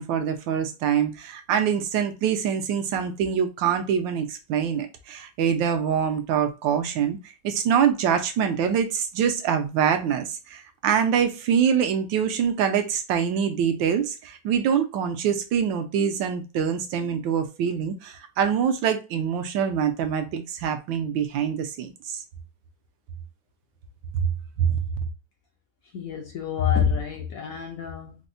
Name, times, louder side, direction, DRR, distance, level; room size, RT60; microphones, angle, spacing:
voice 1, 0.0-7.2 7.4-22.2 24.6-24.8, right 8 dB, 80° right, 1.3 m, -24 dB
voice 2, 25.9-28.2, left 7 dB, 70° left, 0.8 m, -27 dB
4.3 x 2.0 x 2.6 m
omnidirectional pair, 2.1 m